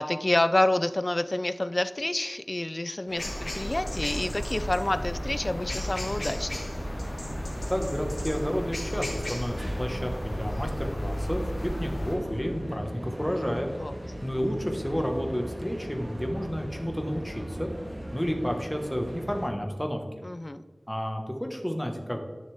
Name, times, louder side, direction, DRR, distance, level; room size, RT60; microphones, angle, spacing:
voice 1, 0.0-6.8 13.8-13.9 20.2-20.6, left 1 dB, 40° left, 12 dB, 0.4 m, -28 dB
sound 1, 3.1-19.5, equal, 30° right, 1.7 m, -39 dB
sound 2, 3.2-12.2, equal, 65° left, 2.3 m, -34 dB
voice 2, 7.7-13.7 14.2-17.7 18.1-20.0 20.9-22.2, equal, 5° left, 3 dB, 1.5 m, -31 dB
11.0 x 6.4 x 3.6 m, 1.4 s
wide cardioid pair, 50°, 0 cm